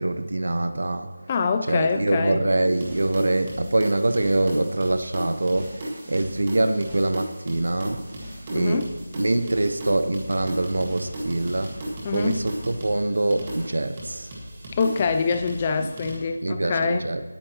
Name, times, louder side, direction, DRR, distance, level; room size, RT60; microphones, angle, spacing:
voice 1, 0.0-1.1 1.7-8.0 8.5-8.9 9.2-14.3 15.8-15.9 16.4-17.2, right 2 dB, 60° right, 10 dB, 0.9 m, -24 dB
voice 2, 1.3-2.5 8.5-8.9 12.0-12.4 14.8-17.1, left 5 dB, 15° left, 8 dB, 0.3 m, -25 dB
sound 1, 2.7-16.2, right 1 dB, 15° right, 1.7 m, -36 dB
19.0 x 8.8 x 3.0 m, 1.2 s
figure-of-eight pair, 180°, 0 cm